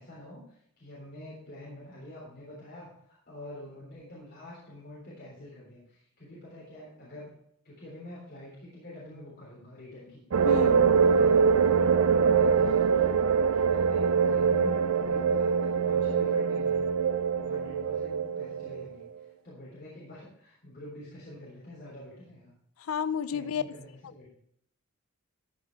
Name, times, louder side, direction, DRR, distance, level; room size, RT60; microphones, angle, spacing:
voice 1, 0.0-2.9 3.3-7.3 7.6-13.2 13.5-16.8 17.4-19.1 19.4-22.5 23.3-24.3, left 1 dB, 50° left, 3.6 m, -46 dB
sound 1, 10.3-18.8, right 6 dB, 85° right, 0.5 m, -24 dB
voice 2, 10.4-10.9 22.9-23.6, left 7 dB, 90° left, 0.5 m, -31 dB
13.5 x 5.9 x 4.5 m
head